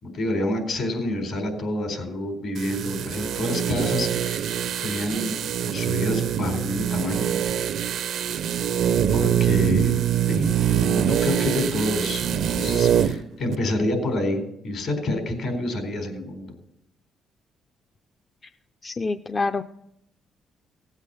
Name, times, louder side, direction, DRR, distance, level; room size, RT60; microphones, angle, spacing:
voice 1, 0.0-5.4 5.6-7.3 9.1-10.0 10.3-16.4, left 1 dB, 70° left, 4 dB, 4.2 m, -28 dB
sound 1, 2.6-13.2 13.5-13.6, right 9 dB, 75° right, 0.5 m, -24 dB
voice 2, 18.8-19.6, left 3 dB, 35° left, 9 dB, 0.5 m, -26 dB
17.0 x 8.2 x 7.0 m, 0.80 s
cardioid pair, 90°, 0 cm